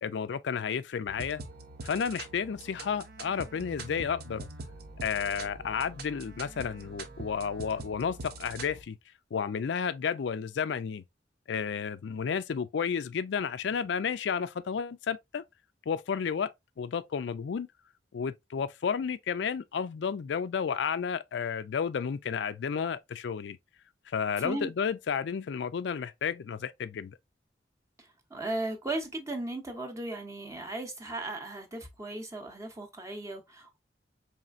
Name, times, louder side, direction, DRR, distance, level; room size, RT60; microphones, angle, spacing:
voice 1, 0.0-1.4 1.8-4.5 5.0-9.0 9.3-11.0 11.5-15.4 15.9-16.5 16.8-17.7 18.1-23.6 24.1-27.2, left 6 dB, 70° left, 0.4 m, -32 dB
sound 1, 1.1-8.8, right 3 dB, 55° right, 0.6 m, -44 dB
voice 2, 24.4-24.7 28.0-33.8, right 2 dB, 15° right, 0.6 m, -36 dB
4.2 x 3.1 x 2.4 m
head